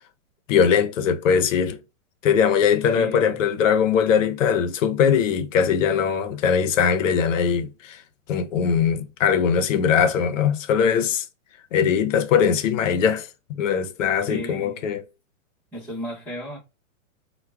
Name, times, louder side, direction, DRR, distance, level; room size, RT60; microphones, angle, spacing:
voice 1, 0.5-1.8 2.2-8.0 8.3-11.2 11.7-15.0, left 7 dB, 65° left, 0.6 m, -21 dB
voice 2, 2.9-3.4 14.3-14.9 15.7-16.6, equal, 5° left, 0.7 m, -34 dB
4.5 x 2.1 x 2.2 m
hypercardioid pair, 160°, 42 cm